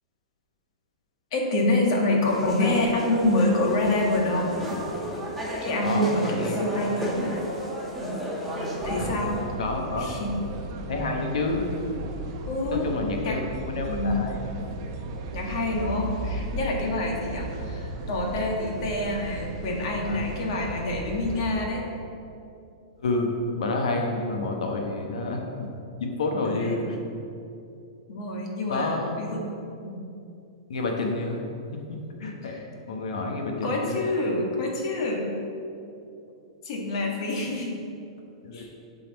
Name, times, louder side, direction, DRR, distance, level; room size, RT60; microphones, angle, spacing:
voice 1, 1.3-4.5 5.6-7.4 7.9-8.2 8.8-9.4 10.0-10.3 12.5-12.9 13.2-13.4 13.9-14.3 15.3-21.8 26.4-26.8 28.1-29.4 29.8-30.1 32.4-32.6 33.6-35.4 36.6-37.8 38.5-38.7, left 2 dB, 55° left, -1 dB, 1.6 m, -27 dB
sound 1, 2.2-9.4, right 1 dB, ahead, 1.8 m, -32 dB
voice 2, 5.8-6.6 9.0-9.3 9.6-10.1 10.9-11.6 12.7-14.3 17.2-17.4 20.0-20.3 23.0-27.0 28.7-29.2 30.7-31.4 31.9-32.6 32.9-34.0 38.4-38.6, left 2 dB, 80° left, 1 dB, 1.2 m, -29 dB
sound 2, 8.8-21.7, right 2 dB, 40° right, 0.8 m, -35 dB
11.0 x 4.2 x 4.1 m, 2.6 s
hypercardioid pair, 150°, 3 cm